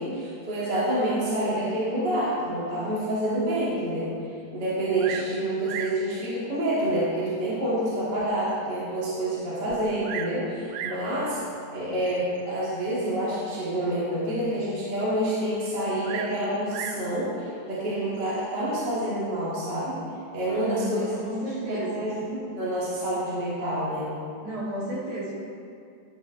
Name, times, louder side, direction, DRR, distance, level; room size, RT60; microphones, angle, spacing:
voice 1, 0.0-11.4 11.7-20.0 20.3-21.1 21.7-24.1, right 1 dB, 35° right, -9 dB, 3.1 m, -28 dB
Bird vocalization bird call bird song, 5.0-5.4 5.7-6.0 6.9-7.0 7.6-7.7 8.2-8.3 8.5-8.6 9.7-10.4 10.7-11.1 12.1-12.4 16.0-17.1 18.2-18.6, right 8 dB, 75° right, 1.8 m, -36 dB
voice 2, 20.6-22.1 24.4-25.3, right 2 dB, 50° right, -9 dB, 4.4 m, -32 dB
16.0 x 11.0 x 3.6 m, 2.4 s
omnidirectional pair, 3.7 m